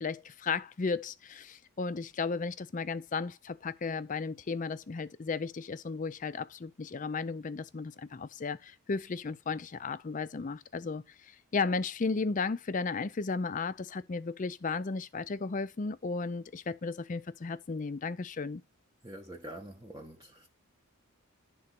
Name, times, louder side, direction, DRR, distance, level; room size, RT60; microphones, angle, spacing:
voice 1, 0.0-18.6, left 4 dB, 35° left, 0.4 m, -34 dB
voice 2, 19.0-20.5, right 1 dB, 15° right, 0.7 m, -45 dB
10.5 x 3.8 x 5.9 m
head